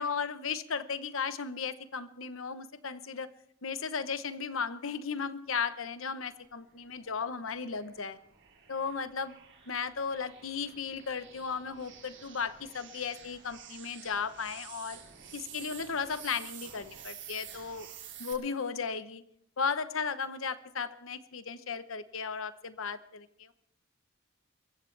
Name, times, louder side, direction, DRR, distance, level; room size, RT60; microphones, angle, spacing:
voice 1, 0.0-3.3 3.6-8.2 8.7-9.4 9.7-15.0 15.3-17.9 18.2-19.2 19.6-23.5, left 5 dB, 65° left, 12 dB, 0.9 m, -35 dB
sound 1, 6.8-18.3, right 8 dB, 60° right, 6.6 m, -50 dB
28.0 x 15.0 x 3.3 m, 0.73 s
head